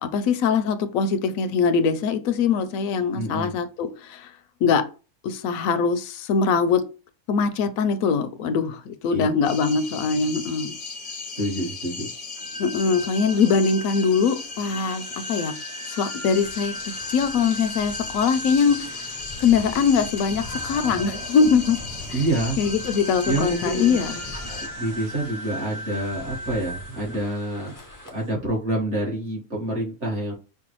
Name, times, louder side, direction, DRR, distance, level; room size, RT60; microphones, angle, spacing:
voice 1, 0.0-4.3 4.6-4.8 5.2-6.8 7.3-10.8 12.6-15.0 15.3-15.5 15.9-16.7 17.1-18.9 19.4-21.8 22.1-22.2 22.6-24.2, left 5 dB, 75° left, 0.9 m, -22 dB
voice 2, 3.1-3.5 9.1-9.3 11.4-12.1 22.1-22.6 23.3-24.0 24.3-27.7 28.1-30.3, right 1 dB, 50° right, 1.7 m, -27 dB
sound 1, 9.4-24.7, left 4 dB, 50° left, 0.7 m, -37 dB
sound 2, 12.4-28.3, equal, 70° right, 1.7 m, -38 dB
Rain, 16.3-28.1, left 2 dB, 30° left, 0.3 m, -41 dB
5.4 x 2.3 x 2.9 m
omnidirectional pair, 1.5 m